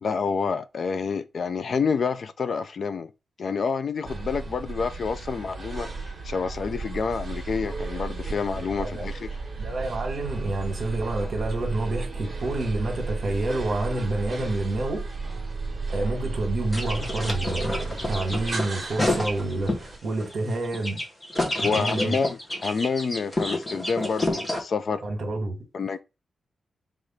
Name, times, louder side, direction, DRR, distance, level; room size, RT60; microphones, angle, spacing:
voice 1, 0.0-3.1 3.4-5.9 6.2-9.3 21.6-25.0 25.7-26.0, left 5 dB, 50° left, 0.3 m, -28 dB
sound 1, 4.0-20.0, right 4 dB, 25° right, 1.4 m, -33 dB
voice 2, 9.6-15.0 15.9-21.0 21.6-22.2 25.0-25.6, right 2 dB, 50° right, 1.5 m, -28 dB
sound 2, 16.7-19.9 20.2-24.6, left 1 dB, 15° left, 0.9 m, -29 dB
4.9 x 2.5 x 4.2 m
wide cardioid pair, 160°, 0 cm